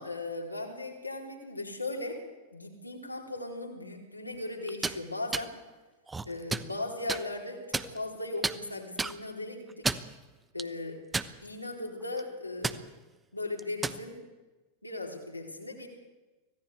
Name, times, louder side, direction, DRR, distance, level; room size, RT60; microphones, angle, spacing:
voice 1, 0.0-2.2 2.5-5.5 6.2-9.9 10.5-11.0 11.4-12.8 13.3-14.2 14.8-15.9, left 2 dB, 85° left, 0 dB, 4.3 m, -37 dB
sound 1, 4.7-5.0 5.3-5.5 6.1-6.7 7.1-7.2 7.7-8.2 8.4-8.6 9.0-9.1 9.7-10.1 10.6-10.7 11.1-11.7 12.0-12.2 12.6-12.8 13.6-14.0, right 4 dB, 10° right, 1.0 m, -31 dB
25.0 x 17.5 x 8.3 m, 1.2 s
figure-of-eight pair, 90°, 0 cm